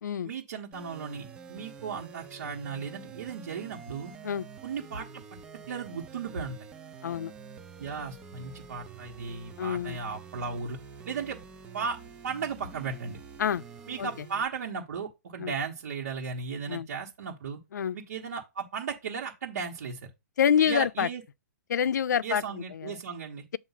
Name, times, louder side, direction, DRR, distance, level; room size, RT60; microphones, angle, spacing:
voice 1, 0.2-4.1 4.6-5.2 5.7-6.6 7.8-10.8 11.1-11.4 11.7-12.0 12.2-13.2 13.9-17.6 17.9-20.1 20.6-21.2 22.2-23.4, right 5 dB, 60° right, 1.2 m, -36 dB
sound 1, 0.7-14.4, right 6 dB, 10° right, 0.4 m, -47 dB
voice 2, 7.0-7.3 9.6-10.0 13.4-13.6 14.0-14.1 15.4-15.5 16.7-16.9 17.7-18.0 20.4-21.1 21.7-22.4 22.8-23.0, left 8 dB, 85° left, 0.4 m, -26 dB
7.1 x 2.5 x 5.7 m
hypercardioid pair, 165°, 9 cm